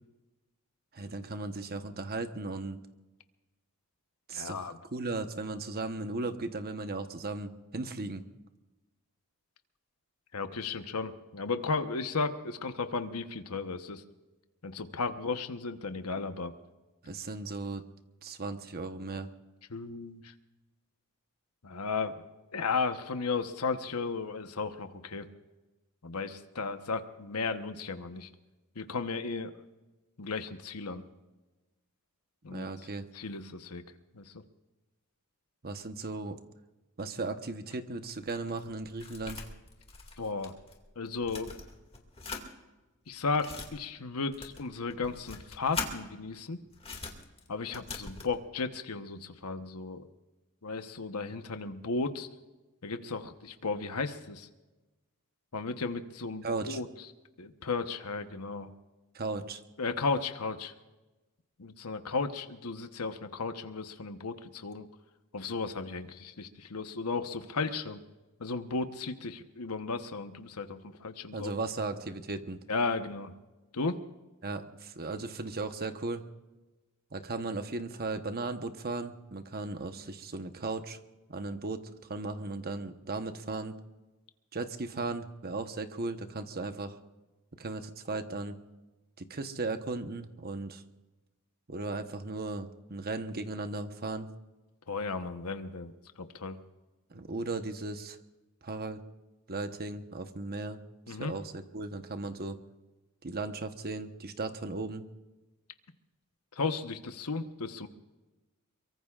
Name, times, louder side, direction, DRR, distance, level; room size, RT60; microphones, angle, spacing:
voice 1, 0.9-2.8 4.3-8.2 17.0-17.8 18.2-19.3 32.5-33.1 35.6-36.4 37.0-39.4 56.4-56.8 59.1-59.6 71.3-72.6 74.4-76.2 77.1-81.0 81.3-83.8 84.5-87.0 87.6-88.6 89.3-90.8 91.7-94.3 97.1-98.2 98.6-99.0 99.5-100.8 101.1-102.6 103.2-105.0, right 3 dB, 45° right, 8 dB, 1.1 m, -36 dB
voice 2, 4.3-4.8 10.3-14.0 14.6-16.5 19.7-20.3 21.6-22.2 22.5-25.3 26.0-28.3 28.7-29.5 30.2-31.0 32.4-32.7 33.1-33.8 34.1-34.4 40.2-40.5 41.0-41.5 43.1-46.6 47.5-50.1 50.6-52.3 52.8-54.5 55.5-56.9 57.4-58.7 59.8-60.7 61.6-64.9 65.3-68.0 68.4-71.5 72.7-73.3 73.7-74.0 94.9-96.6 101.1-101.4 106.5-107.9, left 4 dB, 90° left, 8 dB, 1.1 m, -34 dB
sound 1, 38.0-40.8 41.1-42.5 43.1-43.7 44.3-45.9 46.7-48.3, left 4 dB, 25° left, 2.3 m, -42 dB
23.5 x 23.5 x 2.5 m, 1.1 s
head